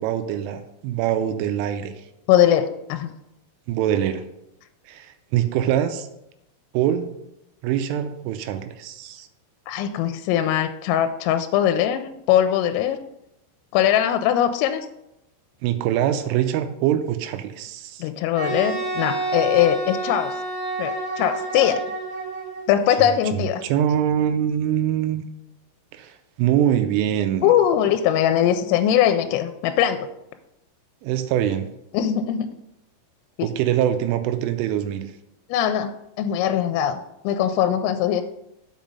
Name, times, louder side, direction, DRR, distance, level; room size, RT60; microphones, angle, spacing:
voice 1, 0.0-1.9 3.7-4.2 4.9-6.1 6.7-7.1 7.6-9.3 15.6-18.0 23.0-25.2 25.9-27.5 31.0-31.7 33.4-35.1, right 10 dB, 80° right, 9 dB, 3.0 m, -24 dB
voice 2, 2.3-3.1 9.7-13.0 13.7-14.9 18.0-20.4 20.8-21.8 22.7-23.6 27.4-30.1 31.9-32.5 33.4-33.5 35.5-35.9 36.2-38.2, left 10 dB, 85° left, 8 dB, 3.1 m, -21 dB
Wind instrument woodwind instrument, 18.4-22.7, right 2 dB, 55° right, 2.3 m, -28 dB
7.4 x 5.0 x 5.3 m, 0.83 s
omnidirectional pair, 5.9 m